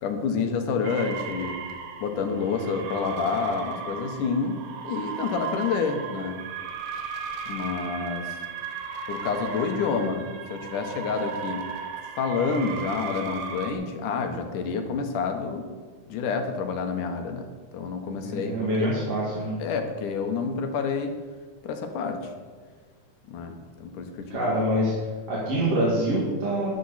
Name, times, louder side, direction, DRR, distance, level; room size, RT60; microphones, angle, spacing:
voice 1, 0.0-1.6 2.0-6.4 7.5-8.4 9.1-11.7 12.2-15.7 16.1-18.9 19.6-21.1 21.6-22.3 23.3-24.5, left 5 dB, 90° left, 5 dB, 2.8 m, -28 dB
sound 1, 0.8-13.7, right 6 dB, 85° right, 2.6 m, -36 dB
voice 2, 18.2-19.6 24.3-24.9 25.3-26.8, right 1 dB, 55° right, -6 dB, 3.1 m, -25 dB
13.0 x 11.0 x 4.2 m, 1.5 s
omnidirectional pair, 3.5 m